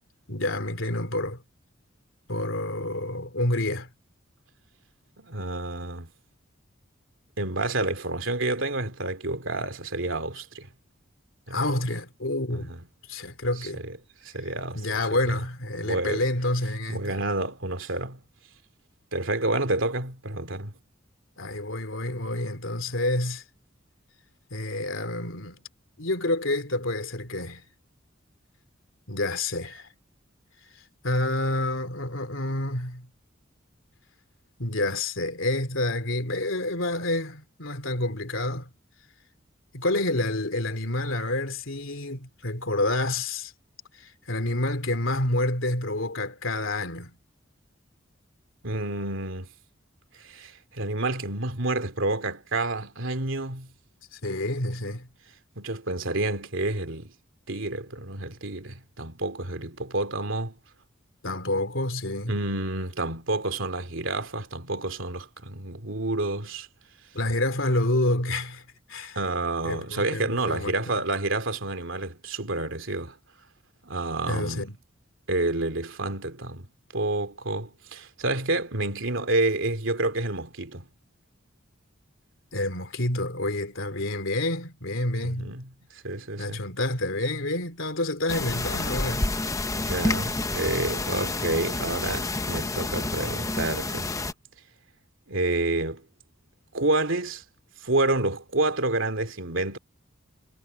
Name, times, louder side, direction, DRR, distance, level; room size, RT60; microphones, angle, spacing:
voice 1, 0.3-1.4 2.3-3.9 11.5-12.7 13.1-13.8 14.7-17.2 21.4-23.4 24.5-25.6 26.0-27.7 29.1-29.9 31.0-33.1 34.6-38.7 39.7-43.5 43.9-47.2 54.1-55.1 61.2-62.3 67.1-69.2 69.6-70.7 74.3-74.8 82.5-85.5 86.4-89.3, left 1 dB, 75° left, 3.1 m, -28 dB
voice 2, 5.2-6.1 7.4-10.7 11.5-11.6 12.5-12.8 13.8-13.9 14.3-15.0 15.8-16.2 16.9-18.2 19.1-20.8 48.6-49.5 50.2-53.7 55.6-57.1 57.5-60.6 62.3-66.7 69.1-73.2 73.8-74.6 75.3-80.9 85.2-85.7 86.0-86.6 89.8-94.1 95.3-96.0 96.7-97.4 97.8-99.8, right 2 dB, 70° right, 2.9 m, -29 dB
sound 1, 88.3-94.3, left 2 dB, 15° left, 0.8 m, -29 dB
head